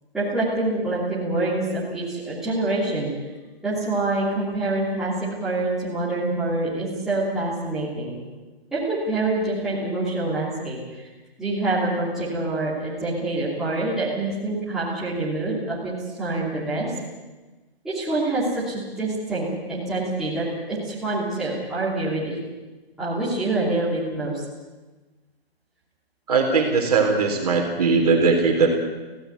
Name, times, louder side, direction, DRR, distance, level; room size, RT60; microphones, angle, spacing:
voice 1, 0.1-3.1 3.6-5.1 5.4-8.1 8.7-11.0 11.4-15.9 16.2-16.9 17.8-22.4 23.0-24.4, right 2 dB, ahead, -11 dB, 3.0 m, -26 dB
voice 2, 26.3-28.7, right 4 dB, 40° right, 3 dB, 3.7 m, -19 dB
20.0 x 16.5 x 9.4 m, 1.2 s
hypercardioid pair, 175°, 31 cm